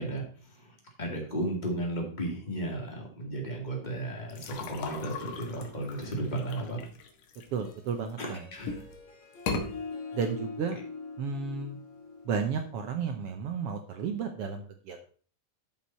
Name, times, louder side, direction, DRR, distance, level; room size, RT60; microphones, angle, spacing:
voice 1, 0.0-6.9 8.2-8.8, right 1 dB, 15° left, 0 dB, 2.1 m, -34 dB
sound 1, 4.3-8.1 8.6-9.0 9.3-9.7, left 4 dB, 80° left, 2.9 m, -37 dB
Harp, 7.5-13.0, left 4 dB, 60° left, 3.6 m, -44 dB
voice 2, 7.5-8.4 10.1-10.8 11.2-11.8 12.2-15.0, right 6 dB, 80° right, 6 dB, 1.3 m, -33 dB
12.5 x 5.6 x 4.3 m, 0.42 s
omnidirectional pair, 3.7 m